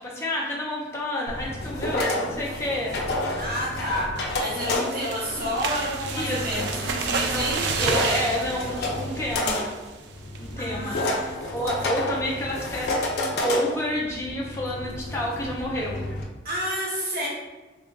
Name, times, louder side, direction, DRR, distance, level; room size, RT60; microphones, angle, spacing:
voice 1, 0.0-3.0 6.1-6.7 7.3-7.5 7.8-9.7 10.4-11.0 11.5-16.0, left 1 dB, 15° left, -4 dB, 0.6 m, -29 dB
sound 1, 1.3-16.2, left 1 dB, 60° left, 0.6 m, -30 dB
voice 2, 3.4-8.6 10.6-12.0 16.4-17.3, equal, 50° right, -6 dB, 1.2 m, -30 dB
sound 2, 4.2-9.9 10.3-10.6 10.9-11.0 11.4-11.7, right 5 dB, 70° right, 0.3 m, -31 dB
3.4 x 2.4 x 3.8 m, 1.2 s
head